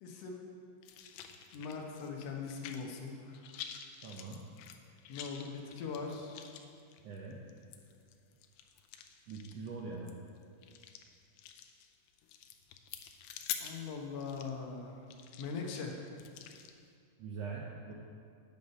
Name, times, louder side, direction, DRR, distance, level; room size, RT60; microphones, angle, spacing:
voice 1, 0.0-0.4 1.5-3.4 5.1-6.5 13.6-15.1 15.4-16.0, left 5 dB, 70° left, 1 dB, 1.5 m, -41 dB
sound 1, 0.8-3.1 3.3-16.8, left 9 dB, 85° left, 2.3 m, -48 dB
voice 2, 4.0-4.4 7.0-7.4 9.3-10.1 17.2-17.9, right 4 dB, 80° right, -3 dB, 1.4 m, -43 dB
9.3 x 7.1 x 5.4 m, 2.3 s
omnidirectional pair, 3.9 m